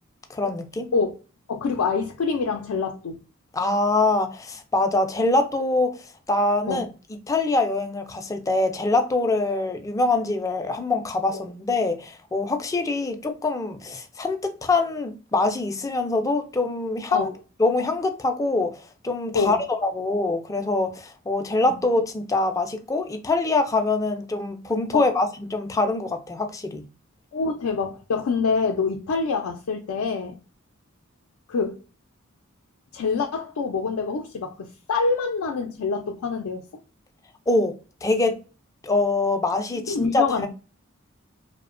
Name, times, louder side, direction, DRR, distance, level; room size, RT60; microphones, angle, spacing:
voice 1, 0.3-0.9 3.5-5.9 6.3-6.9 7.3-17.3 17.6-26.8 37.5-37.7 38.0-38.4 38.8-40.5, left 2 dB, 15° left, 0.3 m, -24 dB
voice 2, 1.5-3.2 6.7-6.9 17.1-17.3 19.3-19.6 24.9-25.0 27.3-30.4 31.5-31.8 32.9-36.7 39.7-40.5, left 4 dB, 90° left, 0.4 m, -26 dB
2.8 x 2.1 x 2.4 m
head